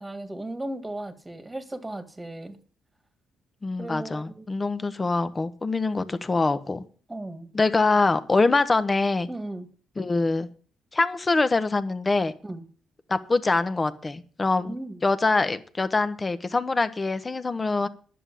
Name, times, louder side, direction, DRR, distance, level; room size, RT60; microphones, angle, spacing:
voice 1, 0.0-2.6 3.8-4.5 7.1-7.5 9.3-9.7 12.4-12.6 14.6-15.0, right 1 dB, 15° right, 9 dB, 2.0 m, -36 dB
voice 2, 3.6-6.8 7.5-9.3 10.0-10.5 10.9-12.3 13.1-14.8 15.0-17.9, left 3 dB, 25° left, 11 dB, 1.2 m, -24 dB
11.0 x 7.7 x 8.5 m, 0.42 s
cardioid pair, 90°, 0 cm